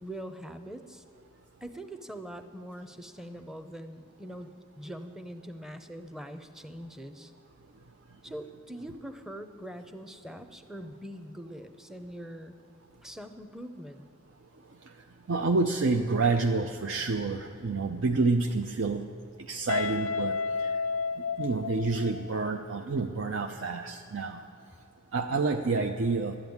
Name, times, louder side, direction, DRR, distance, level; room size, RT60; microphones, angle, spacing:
voice 1, 0.0-1.0 1.6-4.5 4.8-7.3 8.2-12.6 13.0-14.0, equal, ahead, 8 dB, 0.7 m, -43 dB
voice 2, 15.3-19.0 19.4-20.8 21.4-24.4 25.1-26.3, right 3 dB, 65° right, 5 dB, 0.6 m, -28 dB
Guitar, 19.7-22.5, left 5 dB, 70° left, 0.5 m, -31 dB
12.5 x 8.9 x 9.5 m, 2.7 s
head